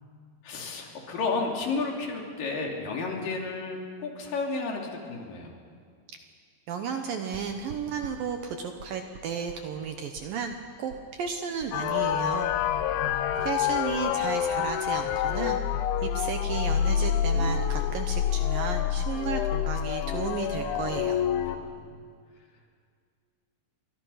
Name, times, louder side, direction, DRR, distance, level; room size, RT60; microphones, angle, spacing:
voice 1, 0.4-5.5 12.9-13.2 17.3-17.6 21.6-22.0, left 3 dB, 50° left, 0 dB, 4.2 m, -32 dB
voice 2, 6.7-12.5 13.4-15.6 16.0-21.2, right 6 dB, 75° right, 5 dB, 2.1 m, -33 dB
sound 1, 7.3-15.6 15.9-17.6 17.9-21.1, right 3 dB, 45° right, 3.2 m, -49 dB
sound 2, 11.7-21.6, left 9 dB, 80° left, 3.2 m, -27 dB
29.5 x 24.5 x 5.7 m, 2.1 s
omnidirectional pair, 5.4 m